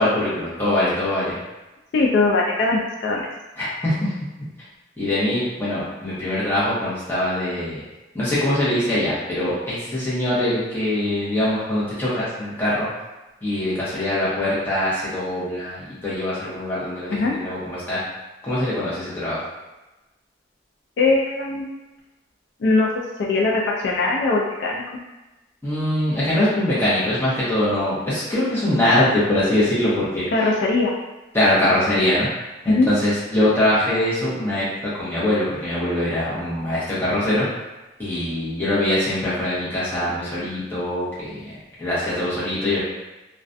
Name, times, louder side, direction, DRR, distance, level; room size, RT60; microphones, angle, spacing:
voice 1, 0.0-1.4 3.6-4.1 5.0-7.8 8.1-12.9 13.4-18.0 18.4-19.4 25.6-30.2 31.3-32.3 32.6-34.6 35.0-37.5 38.0-41.4 41.8-42.8, left 1 dB, 10° left, -10 dB, 0.8 m, -22 dB
voice 2, 1.9-3.3 17.1-17.3 21.0-21.7 22.6-22.9 23.2-24.8 30.3-30.9 32.7-32.9, left 3 dB, 65° left, -2 dB, 0.3 m, -20 dB
2.3 x 2.2 x 2.5 m, 1.1 s
head